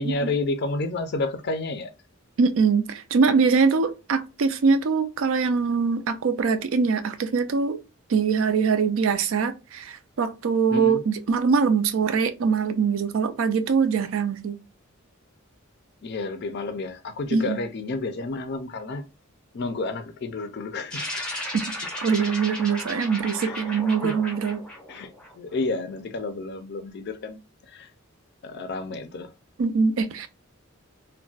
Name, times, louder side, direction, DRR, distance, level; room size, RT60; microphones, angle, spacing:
voice 1, 0.0-1.9 10.7-11.0 16.0-19.0 19.5-21.3 23.5-23.6 24.0-24.1 24.9-27.9 28.4-29.3, left 3 dB, 50° left, 0.4 m, -30 dB
voice 2, 2.4-7.8 8.1-14.6 17.3-17.6 21.5-21.6 22.0-24.6 29.6-30.3, right 5 dB, 65° right, 0.4 m, -23 dB
sound 1, 20.9-25.6, left 1 dB, 5° left, 0.6 m, -35 dB
2.3 x 2.1 x 3.8 m
head